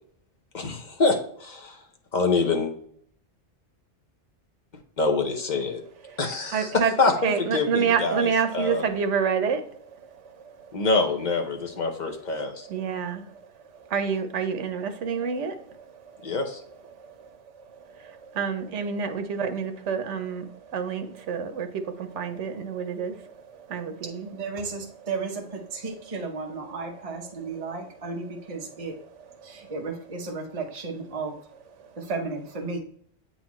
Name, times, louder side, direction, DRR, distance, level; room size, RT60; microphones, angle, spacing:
voice 1, 0.5-1.8 2.1-2.7 5.0-5.8 6.2-6.6 7.0-7.1 7.4-8.3 8.5-8.8 10.7-12.7 16.2-16.6, left 3 dB, 40° left, 4 dB, 1.0 m, -25 dB
voice 2, 6.0-6.9 7.2-10.9 11.6-11.7 12.1-24.3 24.7-25.1 26.2-26.3 27.3-27.8 28.0-29.7 31.8-32.1, right 6 dB, 85° right, 9 dB, 1.1 m, -30 dB
voice 3, 24.3-29.0 29.4-31.4 32.0-32.8, right 4 dB, 35° right, 1 dB, 0.8 m, -34 dB
8.2 x 4.2 x 3.0 m, 0.63 s
omnidirectional pair, 1.2 m